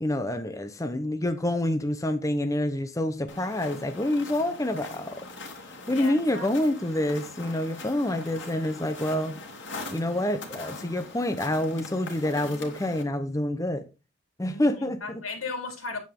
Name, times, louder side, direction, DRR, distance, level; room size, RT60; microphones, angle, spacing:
voice 1, 0.0-5.3 5.9-9.4 9.9-13.9 14.4-15.0, left 1 dB, 15° left, 0.8 m, -27 dB
sound 1, 3.3-13.0, left 3 dB, 60° left, 3.0 m, -42 dB
voice 2, 5.9-6.5 14.5-16.0, left 3 dB, 85° left, 4.1 m, -37 dB
9.2 x 8.9 x 3.7 m
head